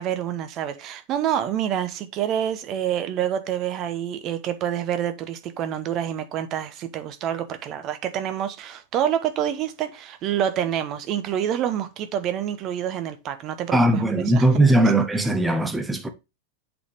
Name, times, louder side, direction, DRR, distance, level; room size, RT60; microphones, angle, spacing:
voice 1, 0.0-14.5 14.8-14.9, right 10 dB, 35° right, 0.9 m, -27 dB
voice 2, 13.7-16.1, right 1 dB, 10° right, 0.9 m, -19 dB
7.9 x 4.1 x 3.4 m
figure-of-eight pair, 90°, 0 cm